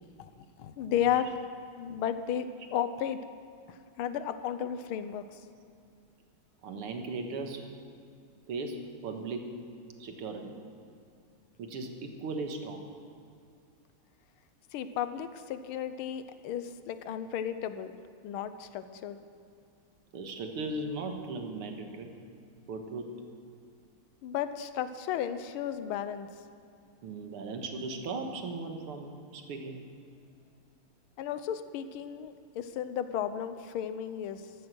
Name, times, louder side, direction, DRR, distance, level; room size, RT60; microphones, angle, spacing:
voice 1, 0.6-1.3 1.8-3.2 3.7-5.2 14.7-17.9 18.2-19.2 24.2-26.3 31.2-34.4, left 9 dB, 80° left, 11 dB, 1.6 m, -33 dB
voice 2, 6.6-7.6 8.5-9.5 10.0-10.5 11.6-12.8 16.0-16.1 20.1-22.1 22.7-23.1 27.0-29.8, right 3 dB, 85° right, 4 dB, 2.3 m, -37 dB
15.0 x 13.0 x 6.3 m, 2.4 s
omnidirectional pair, 2.4 m